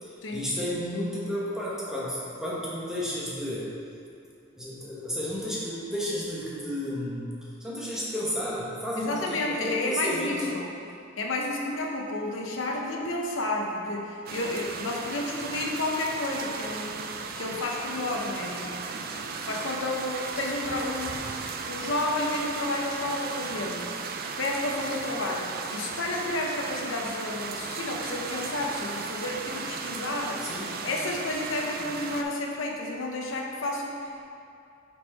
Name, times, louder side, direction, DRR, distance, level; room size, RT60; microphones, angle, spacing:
voice 1, 0.0-3.7 4.6-7.3 7.6-10.5 30.4-30.8, equal, 5° right, -8 dB, 1.2 m, -32 dB
voice 2, 9.0-10.7 11.2-16.9 17.4-18.8 19.1-23.9 24.4-30.4 30.8-34.3, left 2 dB, 70° left, -1 dB, 0.7 m, -31 dB
sound 1, 14.3-32.2, right 5 dB, 45° right, 0.4 m, -36 dB
6.3 x 4.5 x 4.4 m, 2.5 s
head